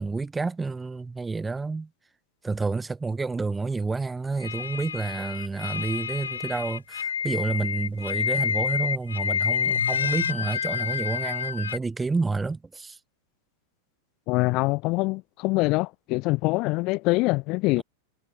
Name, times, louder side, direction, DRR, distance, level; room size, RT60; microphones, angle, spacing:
voice 1, 0.0-1.9 2.4-13.0 17.8-17.9, right 3 dB, 10° right, 4.5 m, -29 dB
sound 1, 4.4-11.8, left 7 dB, 70° left, 5.4 m, -28 dB
voice 2, 14.3-17.8, left 24 dB, 40° left, 2.6 m, -24 dB
figure-of-eight pair, 90°, 0 cm